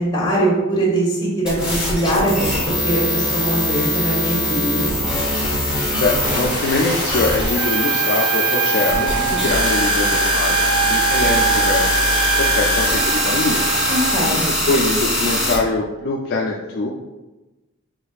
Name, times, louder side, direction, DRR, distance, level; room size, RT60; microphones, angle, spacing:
voice 1, 0.0-2.6 2.8-4.9 13.9-14.5, right 1 dB, 20° left, -4 dB, 1.2 m, -21 dB
sound 1, 1.5-15.6, left 1 dB, 5° right, 1.0 m, -22 dB
voice 2, 6.0-11.9 12.4-13.7 14.7-16.9, left 3 dB, 50° left, -2 dB, 0.4 m, -23 dB
sound 2, 6.2-14.1, equal, 20° right, 0.6 m, -29 dB
Trumpet, 7.6-14.3, right 8 dB, 75° right, 0.3 m, -23 dB
5.1 x 3.8 x 2.4 m, 1.1 s
head